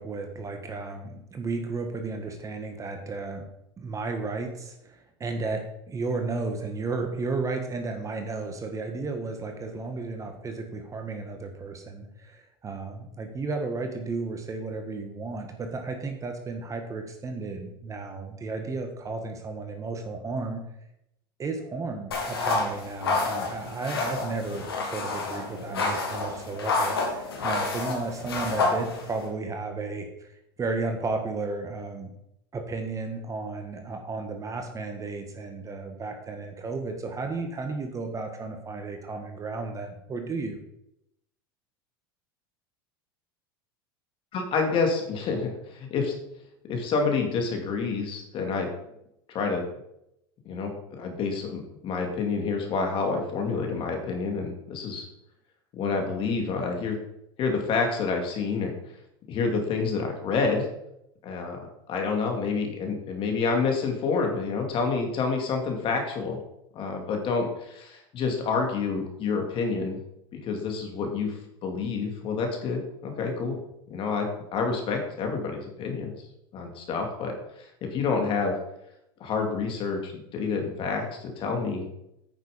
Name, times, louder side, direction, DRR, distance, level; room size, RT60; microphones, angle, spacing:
voice 1, 0.0-3.5 3.8-20.6 21.4-24.7 24.9-30.3 30.6-32.1 32.5-40.6, right 3 dB, 25° right, 5 dB, 1.7 m, -33 dB
sound 1, 22.1-29.3, left 3 dB, 90° left, 2.7 m, -29 dB
voice 2, 44.3-46.1 46.7-48.7 49.3-49.6 50.4-55.0 55.7-57.0 57.4-58.7 59.3-60.7 61.2-66.4 66.7-70.0 70.3-73.6 73.9-76.1 76.5-78.6 79.2-81.9, left 4 dB, 45° left, 3 dB, 2.6 m, -28 dB
9.2 x 6.7 x 5.2 m, 0.81 s
hypercardioid pair, 95°, 12 cm